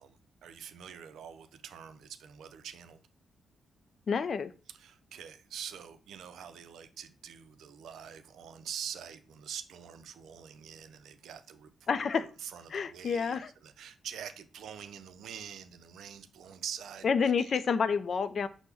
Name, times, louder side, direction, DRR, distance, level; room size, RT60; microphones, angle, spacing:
voice 1, 0.0-3.0 4.7-17.5, right 8 dB, 85° right, 10 dB, 0.4 m, -45 dB
voice 2, 4.1-4.5 11.9-12.3 12.7-13.5 17.0-18.5, left 6 dB, 50° left, 13 dB, 0.3 m, -29 dB
5.8 x 2.1 x 3.4 m, 0.36 s
wide cardioid pair, 140°, 0 cm